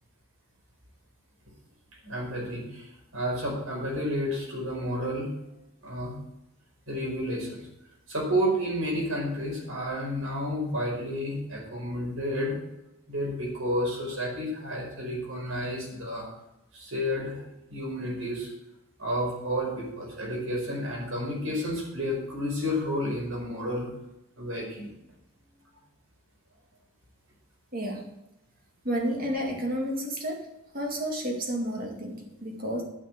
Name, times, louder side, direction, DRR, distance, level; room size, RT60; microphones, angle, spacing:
voice 1, 2.0-5.3 5.8-6.1 6.9-7.6 8.1-12.5 13.1-16.3 16.7-17.4 17.7-18.5 19.0-23.9 24.4-24.9, equal, 65° right, -2 dB, 5.0 m, -31 dB
voice 2, 27.7-28.1 28.8-30.5 30.7-32.8, equal, 40° right, 1 dB, 2.2 m, -31 dB
9.0 x 6.8 x 7.7 m, 0.89 s
head